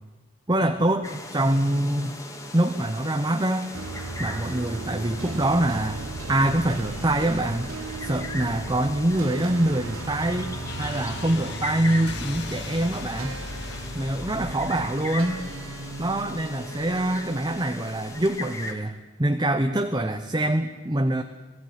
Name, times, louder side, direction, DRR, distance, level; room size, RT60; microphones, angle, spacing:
voice 1, 0.5-2.2 2.5-3.7 4.2-6.0 6.3-7.7 8.0-10.5 10.8-13.4 13.9-15.4 16.0-18.9 19.2-21.2, right 1 dB, 20° right, 6 dB, 0.9 m, -24 dB
sound 1, 1.0-18.7, left 2 dB, 15° left, 2.2 m, -39 dB
sound 2, 3.7-18.7, right 2 dB, 85° right, 1.0 m, -37 dB
sound 3, 10.7-18.4, left 3 dB, 60° left, 2.2 m, -41 dB
21.0 x 16.0 x 9.7 m, 1.2 s
head